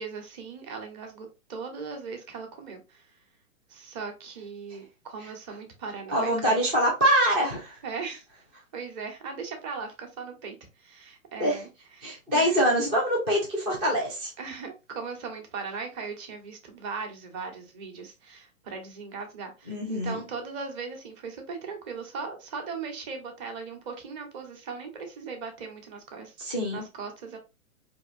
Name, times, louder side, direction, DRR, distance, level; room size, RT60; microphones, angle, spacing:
voice 1, 0.0-3.2 3.7-6.6 7.8-8.2 8.7-11.7 12.0-12.6 14.4-27.4, right 5 dB, 30° right, 1.2 m, -38 dB
voice 2, 6.1-7.8 11.4-11.6 12.0-14.3 19.7-20.2 26.4-26.8, equal, 10° right, 0.3 m, -24 dB
4.6 x 2.7 x 2.6 m
figure-of-eight pair, 120°, 43 cm